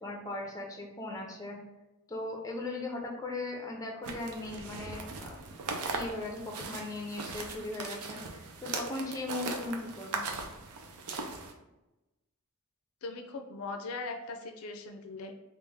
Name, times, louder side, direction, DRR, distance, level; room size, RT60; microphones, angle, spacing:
voice 1, 0.0-1.6 2.1-5.4 5.9-10.3, left 2 dB, 15° left, 0 dB, 0.5 m, -38 dB
sound 1, 4.0-11.5, right 4 dB, 85° right, 0.5 m, -39 dB
voice 2, 13.0-15.4, left 3 dB, 75° left, 5 dB, 0.4 m, -40 dB
3.4 x 2.4 x 3.3 m, 1.0 s
head